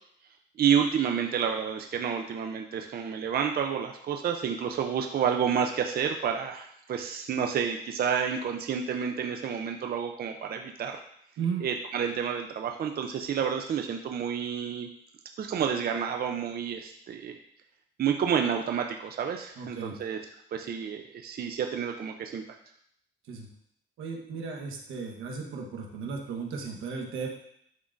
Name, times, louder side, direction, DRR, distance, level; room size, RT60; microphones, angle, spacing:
voice 1, 0.6-11.0 11.6-14.9 15.4-17.4 18.0-20.2 20.5-22.4, right 7 dB, 50° right, 4 dB, 0.6 m, -29 dB
voice 2, 19.6-20.0 23.3-23.5 24.0-27.3, right 5 dB, 85° right, 1 dB, 1.2 m, -35 dB
11.0 x 3.7 x 2.6 m, 0.69 s
cardioid pair, 90°, 20 cm